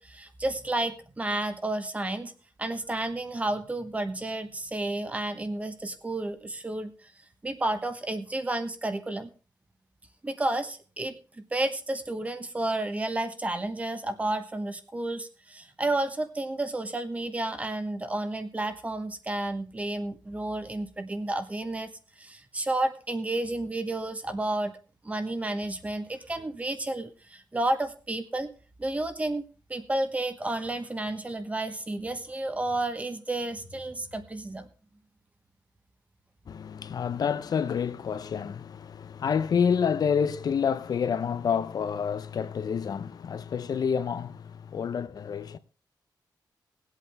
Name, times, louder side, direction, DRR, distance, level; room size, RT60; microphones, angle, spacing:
voice 1, 0.0-2.3 2.6-6.9 7.4-9.3 10.2-21.9 22.2-24.7 25.0-28.5 28.8-34.7, right 2 dB, 20° right, 1.2 m, -31 dB
voice 2, 36.5-45.6, left 7 dB, 60° left, 0.7 m, -28 dB
19.0 x 8.2 x 3.5 m
wide cardioid pair, 150°, 7 cm